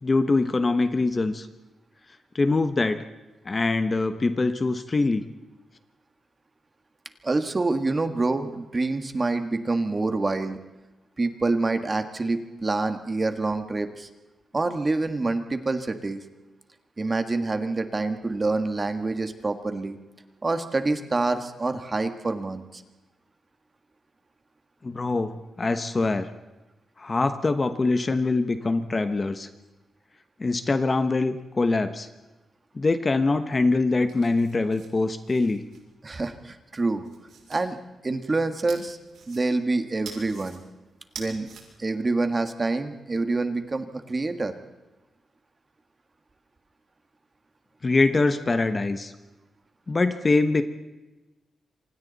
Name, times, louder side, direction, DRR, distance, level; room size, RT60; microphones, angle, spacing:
voice 1, 0.0-1.5 2.3-3.0 3.4-5.3 24.8-26.3 27.0-29.5 30.4-32.1 32.7-35.6 47.8-49.1 49.9-50.6, left 3 dB, 25° left, 9 dB, 1.0 m, -23 dB
voice 2, 7.2-10.6 11.2-14.1 14.5-16.2 17.0-20.0 20.4-22.8 36.0-37.0 37.5-37.8 38.0-39.0 39.3-40.6 41.2-41.5 41.8-44.5, right 3 dB, 25° right, 8 dB, 1.6 m, -26 dB
sound 1, 33.9-36.3 36.8-37.7 38.7-39.7 40.0-40.6 41.0-41.6, right 5 dB, 80° right, 6.2 m, -45 dB
28.0 x 26.0 x 4.1 m, 1.1 s
wide cardioid pair, 160°, 0 cm